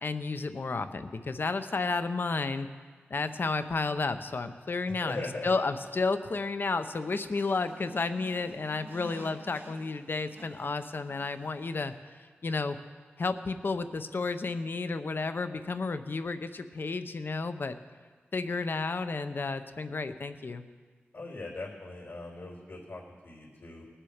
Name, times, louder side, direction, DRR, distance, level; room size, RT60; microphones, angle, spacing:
voice 1, 0.0-2.7 3.1-5.2 5.4-11.9 12.2-12.8 13.2-17.8 18.3-20.6, left 3 dB, 60° left, 10 dB, 0.7 m, -32 dB
voice 2, 5.0-5.5 21.1-23.9, left 2 dB, 75° left, -4 dB, 3.1 m, -40 dB
sound 1, 6.9-12.0, right 1 dB, 70° right, 2.2 m, -51 dB
19.5 x 7.4 x 5.1 m, 1.5 s
wide cardioid pair, 65°, 4 cm